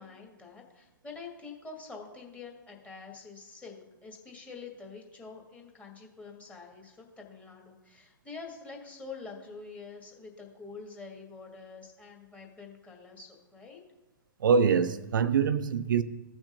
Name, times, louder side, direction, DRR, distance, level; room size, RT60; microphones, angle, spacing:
voice 1, 0.0-13.8, left 4 dB, 10° left, 1.9 m, -46 dB
voice 2, 14.4-16.0, right 6 dB, 65° right, 0.5 m, -24 dB
16.0 x 6.0 x 2.7 m
figure-of-eight pair, 120°, 12 cm